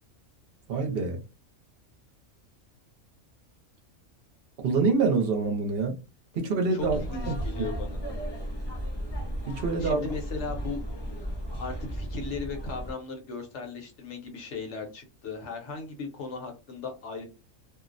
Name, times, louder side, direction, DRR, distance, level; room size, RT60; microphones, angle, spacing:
voice 1, 0.7-1.2 4.6-6.0 6.4-7.0 7.3-7.4 9.5-10.1, right 4 dB, 55° right, 0.8 m, -26 dB
voice 2, 6.7-8.1 9.8-10.8 11.6-17.2, left 4 dB, 65° left, 1.1 m, -37 dB
sound 1, 6.8-12.9, equal, 45° left, 0.3 m, -35 dB
2.5 x 2.0 x 2.5 m
omnidirectional pair, 1.4 m